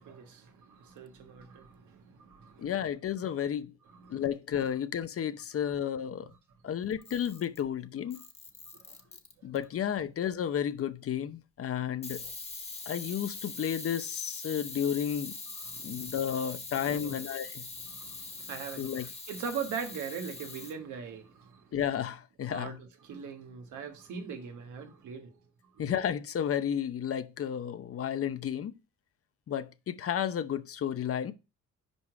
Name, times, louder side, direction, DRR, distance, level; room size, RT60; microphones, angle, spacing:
voice 1, 0.0-2.8 3.2-3.3 3.8-4.2 5.7-5.8 8.7-8.8 15.6-16.1 16.8-17.2 17.8-21.7 22.5-25.3, right 6 dB, 80° right, 1.5 m, -41 dB
voice 2, 2.6-3.7 4.1-6.3 6.6-8.2 9.4-12.2 12.9-15.3 15.8-17.6 18.8-19.1 21.7-22.7 25.8-28.7 29.5-31.3, left 9 dB, 50° left, 0.7 m, -32 dB
Camera, 6.9-7.7 8.1-9.6 12.0-20.7, left 3 dB, 20° left, 1.3 m, -43 dB
5.2 x 5.0 x 4.7 m
cardioid pair, 90°, 30 cm